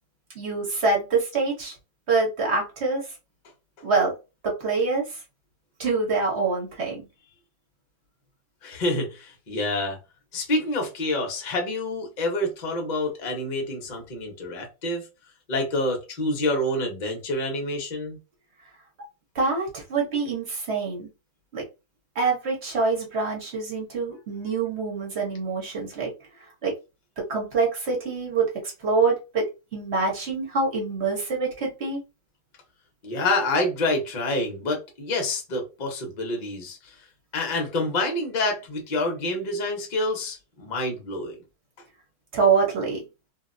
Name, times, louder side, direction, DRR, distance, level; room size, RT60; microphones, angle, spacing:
voice 1, 0.3-1.7 2.1-3.0 3.8-4.1 4.4-5.2 5.8-7.1 19.3-21.1 21.5-21.6 22.1-26.1 26.6-26.7 27.2-29.5 29.7-32.0 42.3-43.0, right 4 dB, 40° right, -1 dB, 1.1 m, -25 dB
voice 2, 8.6-10.0 10.3-15.0 15.5-18.2 33.0-36.9 37.3-41.4, left 2 dB, 45° left, 2 dB, 0.6 m, -27 dB
2.8 x 2.7 x 2.6 m, 0.28 s
omnidirectional pair, 2.2 m